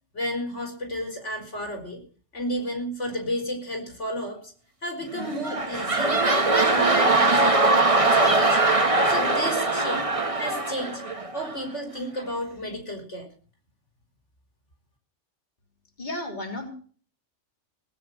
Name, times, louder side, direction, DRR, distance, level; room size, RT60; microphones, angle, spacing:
voice 1, 0.1-2.0 2.3-4.5 4.8-6.2 6.5-8.7 9.0-10.1 10.4-11.0 11.3-13.3, equal, 85° left, 4 dB, 5.0 m, -32 dB
sound 1, 5.1-11.7 12.2-12.3, right 2 dB, 30° right, 1.7 m, -22 dB
voice 2, 16.0-16.7, left 1 dB, 40° left, 3 dB, 3.2 m, -33 dB
18.5 x 9.3 x 6.4 m, 0.43 s
omnidirectional pair, 1.2 m